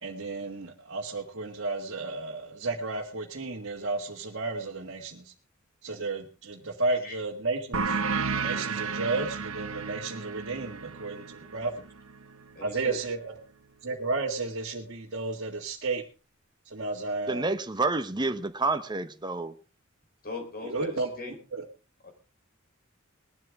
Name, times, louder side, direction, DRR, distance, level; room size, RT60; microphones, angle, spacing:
voice 1, 0.0-5.2 5.8-8.0 8.3-11.7 12.6-13.3 13.8-16.0 16.7-17.5 20.6-21.1 21.5-21.6, right 3 dB, 60° right, 1.9 m, -32 dB
voice 2, 6.9-7.2 12.6-13.1 20.2-21.4 22.0-22.1, left 3 dB, 45° left, 3.9 m, -40 dB
sound 1, 7.7-12.9, right 5 dB, 85° right, 1.3 m, -33 dB
voice 3, 17.3-19.5, right 3 dB, 20° right, 0.9 m, -29 dB
20.0 x 12.0 x 3.6 m
head